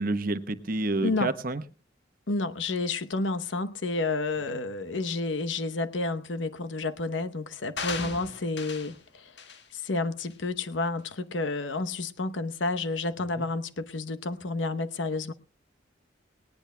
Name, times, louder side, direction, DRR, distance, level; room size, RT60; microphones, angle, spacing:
voice 1, 0.0-1.6 8.0-8.1 13.4-13.5, right 2 dB, 50° right, 1.0 m, -29 dB
voice 2, 1.0-1.3 2.3-9.3 9.7-15.3, left 3 dB, 85° left, 0.9 m, -30 dB
sound 1, 7.8-9.0 9.4-9.6 10.2-10.3, left 5 dB, 65° left, 1.6 m, -37 dB
19.0 x 18.5 x 2.2 m
head